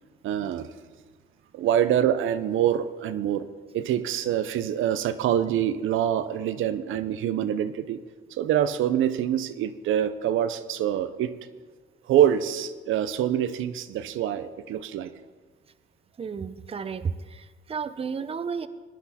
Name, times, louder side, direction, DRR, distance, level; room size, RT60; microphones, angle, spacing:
voice 1, 0.2-0.7 1.5-3.5 3.7-8.0 8.3-11.3 12.1-15.1, right 10 dB, 80° right, 11 dB, 0.7 m, -25 dB
voice 2, 16.2-18.7, right 6 dB, 30° right, 12 dB, 0.6 m, -32 dB
18.5 x 10.5 x 4.2 m, 1.4 s
cardioid pair, 90°, 20 cm